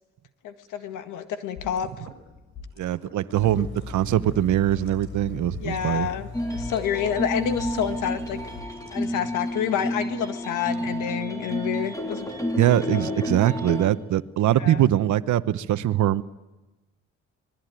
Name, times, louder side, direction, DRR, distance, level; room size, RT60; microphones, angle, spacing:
voice 1, 0.4-1.9 5.6-8.4 8.9-12.3 12.9-13.1 14.6-14.9, left 9 dB, 90° left, 1.8 m, -29 dB
sound 1, 1.6-9.5, left 4 dB, 65° left, 6.3 m, -45 dB
voice 2, 2.8-6.1 12.6-16.2, right 12 dB, 75° right, 1.0 m, -22 dB
sound 2, 3.3-8.6, left 5 dB, 40° left, 3.8 m, -40 dB
sound 3, 6.3-13.9, equal, 10° left, 3.5 m, -30 dB
26.5 x 20.5 x 9.3 m
cardioid pair, 90°, 30 cm